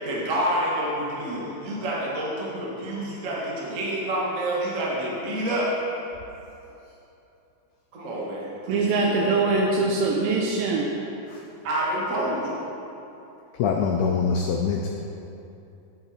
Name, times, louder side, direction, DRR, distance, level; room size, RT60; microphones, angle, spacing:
voice 1, 0.0-5.7 7.9-9.4 11.6-12.6, right 1 dB, 45° right, -5 dB, 1.0 m, -28 dB
voice 2, 8.7-10.9, right 3 dB, 90° right, -2 dB, 2.6 m, -23 dB
voice 3, 13.6-14.9, left 5 dB, 85° left, 2 dB, 1.7 m, -24 dB
9.0 x 8.9 x 4.3 m, 2.8 s
omnidirectional pair, 4.1 m